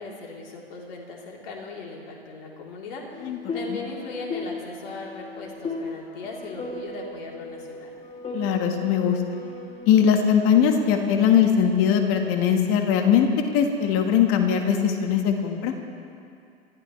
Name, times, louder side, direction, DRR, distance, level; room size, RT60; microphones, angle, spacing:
voice 1, 0.0-7.9, left 3 dB, 60° left, -2 dB, 3.8 m, -38 dB
sound 1, 3.1-10.0, left 2 dB, 20° left, 2.9 m, -36 dB
voice 2, 8.3-9.2 9.9-15.7, left 8 dB, 40° left, 4 dB, 1.7 m, -20 dB
25.5 x 14.5 x 3.3 m, 2.4 s
hypercardioid pair, 105°, 33 cm